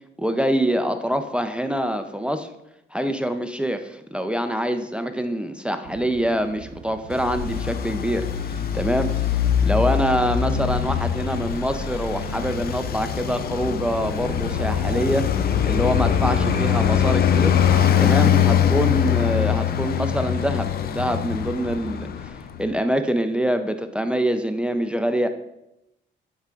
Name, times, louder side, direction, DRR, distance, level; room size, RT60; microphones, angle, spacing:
voice 1, 0.2-2.5 2.9-15.3 15.7-17.6 18.0-22.3 22.6-25.3, equal, 5° right, 8 dB, 0.4 m, -25 dB
sound 1, 5.8-18.3, right 9 dB, 90° right, 0.4 m, -39 dB
Traffic noise roadway noise, 7.1-22.6, left 9 dB, 50° left, 0.5 m, -22 dB
sound 2, 7.1-15.5, left 2 dB, 35° left, 2.2 m, -46 dB
8.0 x 5.0 x 2.4 m, 0.86 s
cardioid pair, 90°, 20 cm